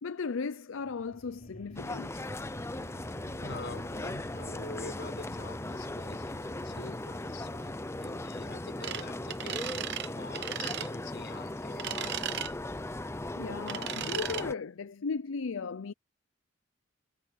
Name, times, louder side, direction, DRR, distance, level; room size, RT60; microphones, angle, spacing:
voice 1, 0.0-2.3 13.4-15.9, left 5 dB, 75° left, 0.6 m, -36 dB
sound 1, 0.8-13.1, equal, 40° left, 7.5 m, -48 dB
sound 2, 1.8-14.5, left 2 dB, 15° left, 0.6 m, -38 dB
voice 2, 3.4-12.2, left 2 dB, 60° left, 5.6 m, -46 dB
sound 3, 8.8-9.0 9.3-10.1 10.3-10.9 11.8-12.5 13.7-14.4, right 11 dB, 60° right, 0.9 m, -36 dB
head